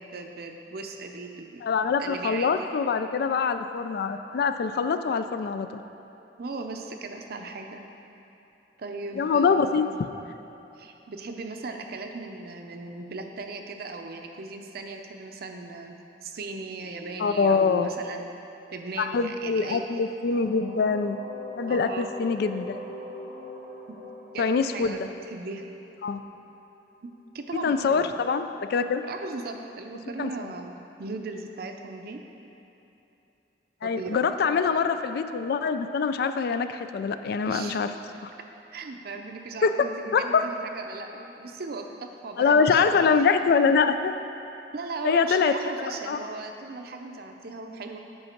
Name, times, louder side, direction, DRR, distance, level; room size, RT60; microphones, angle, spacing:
voice 1, 0.0-1.6 2.0-2.7 6.4-7.8 8.8-9.9 10.8-18.4 18.7-19.8 21.7-22.1 23.9-24.0 24.3-25.6 27.0-27.1 27.3-28.1 29.0-32.2 33.8-34.2 37.4-37.8 38.7-43.3 44.7-48.0, right 3 dB, 60° right, 4 dB, 0.6 m, -38 dB
voice 2, 1.6-5.8 9.2-9.9 17.2-17.9 19.0-21.2 21.6-22.8 24.4-25.1 26.0-26.2 27.6-29.0 30.2-30.3 33.8-37.9 38.2-38.3 39.6-40.4 42.4-44.2 45.0-45.5 46.1-46.2, left 5 dB, 60° left, 10 dB, 0.3 m, -24 dB
sound 1, 20.3-26.0, left 1 dB, 85° left, 1.7 m, -41 dB
7.9 x 5.7 x 4.4 m, 2.9 s
head